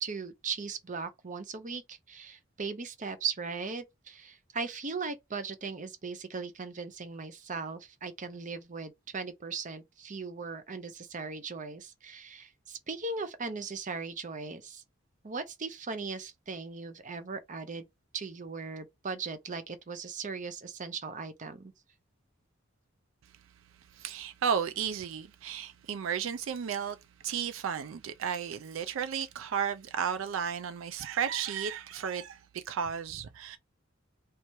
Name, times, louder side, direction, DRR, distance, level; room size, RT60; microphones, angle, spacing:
voice 1, 0.0-14.8 15.2-17.9 18.1-21.7, right 4 dB, 40° right, 0.7 m, -38 dB
voice 2, 23.9-27.0 27.2-33.6, right 7 dB, 70° right, 0.4 m, -33 dB
3.3 x 2.9 x 4.5 m
head